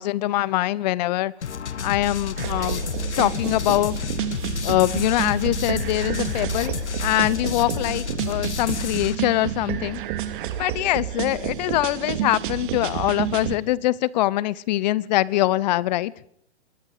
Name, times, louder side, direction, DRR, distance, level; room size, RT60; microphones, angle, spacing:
voice 1, 0.0-1.3 1.8-2.8 3.2-4.1 4.6-6.7 7.0-10.0 10.6-16.1, left 16 dB, 40° left, 1.0 m, -23 dB
sound 1, 1.4-9.2, left 6 dB, 80° left, 1.8 m, -30 dB
sound 2, 2.4-13.6, right 11 dB, 45° right, 2.8 m, -30 dB
26.0 x 21.5 x 5.0 m
hypercardioid pair, 135°, 34 cm